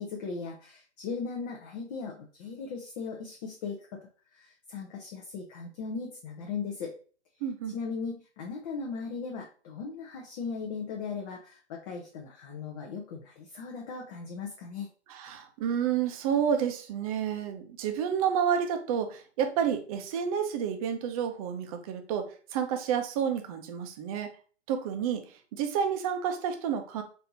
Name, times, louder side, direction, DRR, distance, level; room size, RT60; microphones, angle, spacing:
voice 1, 0.0-4.0 4.3-6.9 7.7-14.9, left 5 dB, 35° left, 0 dB, 0.6 m, -38 dB
voice 2, 7.4-7.8 15.1-24.3 24.7-25.2 25.5-27.0, right 8 dB, 35° right, 6 dB, 0.6 m, -30 dB
4.3 x 2.7 x 2.7 m, 0.40 s
hypercardioid pair, 125°, 34 cm